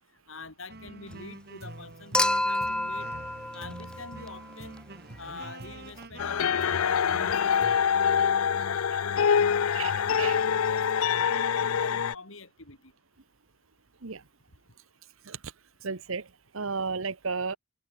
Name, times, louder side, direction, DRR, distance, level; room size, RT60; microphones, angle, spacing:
voice 1, 0.3-3.1 3.5-4.8 5.2-8.4 9.0-12.9, left 3 dB, 70° left, 7.0 m, -46 dB
sound 1, 0.7-7.8, right 2 dB, 50° right, 1.8 m, -45 dB
Human group actions / Chink clink / Liquid, 2.1-4.5 6.0-6.1, left 1 dB, 5° left, 0.7 m, -29 dB
sound 2, 6.2-12.1, left 7 dB, 85° left, 0.5 m, -25 dB
voice 2, 9.7-10.4 14.0-14.2 15.2-15.5 15.8-17.6, right 5 dB, 75° right, 1.1 m, -34 dB
head